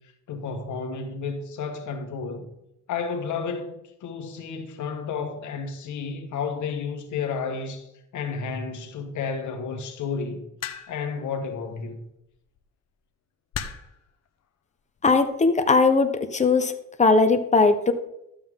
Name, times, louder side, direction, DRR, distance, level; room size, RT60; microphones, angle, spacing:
voice 1, 0.3-2.5 2.9-7.9 8.1-10.5 10.9-12.0, left 5 dB, 75° left, 1.7 m, -31 dB
sound 1, 10.6-11.1 12.3-12.6 13.5-14.0 15.0-15.3, left 8 dB, 60° left, 1.0 m, -35 dB
voice 2, 15.0-16.7 17.0-17.9, left 4 dB, 25° left, 1.1 m, -19 dB
12.5 x 7.8 x 3.8 m
cardioid pair, 90°, 30 cm